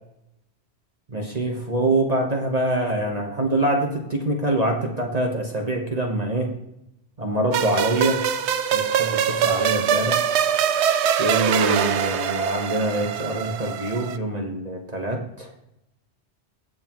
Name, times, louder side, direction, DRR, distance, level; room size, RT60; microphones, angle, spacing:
voice 1, 1.1-6.5 7.2-8.2 8.7-10.2 11.2-15.5, right 1 dB, 35° right, 1 dB, 1.3 m, -25 dB
sound 1, 7.5-14.2, right 8 dB, 75° right, 0.9 m, -23 dB
16.5 x 6.5 x 3.1 m, 0.82 s
omnidirectional pair, 1.2 m